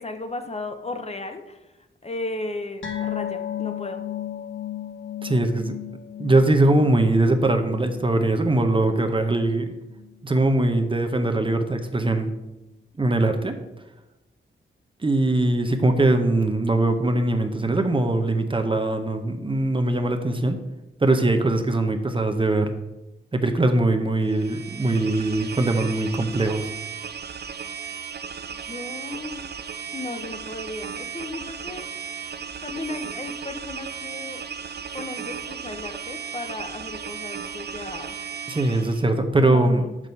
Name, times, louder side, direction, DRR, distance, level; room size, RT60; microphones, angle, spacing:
voice 1, 0.0-1.6 2.0-4.0 28.6-29.5 29.9-31.9 32.6-34.4 34.9-38.2 39.4-39.9, left 2 dB, 30° left, 7 dB, 0.7 m, -35 dB
sound 1, 2.8-9.6 9.9-10.1 10.5-10.6, left 10 dB, 70° left, 1.6 m, -35 dB
voice 2, 5.2-5.7 6.2-9.7 10.2-12.3 13.0-13.5 15.0-20.6 21.0-22.7 23.3-26.7 38.5-39.8, right 2 dB, 25° right, 6 dB, 0.8 m, -21 dB
sound 2, 24.3-39.1, right 7 dB, 50° right, 0.5 m, -35 dB
6.8 x 6.1 x 5.5 m, 0.97 s
wide cardioid pair, 125°, 21 cm